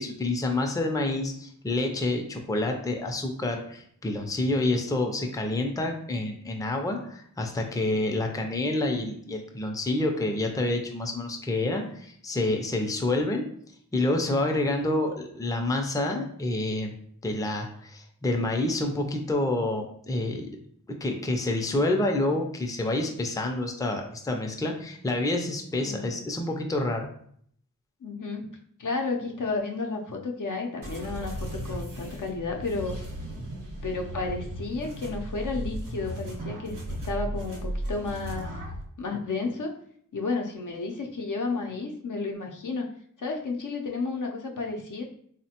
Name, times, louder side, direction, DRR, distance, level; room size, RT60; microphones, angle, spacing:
voice 1, 0.0-13.5 13.9-16.9 17.2-20.5 21.0-27.1, left 2 dB, 10° left, 3 dB, 0.4 m, -28 dB
voice 2, 25.8-26.1 28.0-28.5 28.8-33.0 33.8-38.6 39.0-39.7 40.1-42.9 43.2-45.0, left 3 dB, 70° left, 2 dB, 0.5 m, -32 dB
sound 1, 30.8-38.8, right 1 dB, 75° right, 0.8 m, -36 dB
3.2 x 2.1 x 2.8 m, 0.64 s
wide cardioid pair, 45°, 33 cm